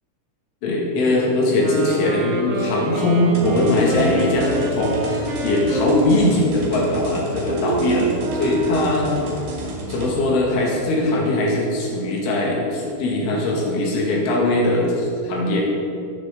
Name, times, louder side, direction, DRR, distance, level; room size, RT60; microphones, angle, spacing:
voice 1, 0.6-9.1 9.9-15.7, left 2 dB, 80° left, -3 dB, 4.5 m, -21 dB
sound 1, 1.5-9.1, right 2 dB, 85° right, 4.0 m, -26 dB
sound 2, 3.3-10.1, right 1 dB, 50° right, 3.6 m, -32 dB
23.0 x 11.0 x 3.8 m, 2.7 s
omnidirectional pair, 5.5 m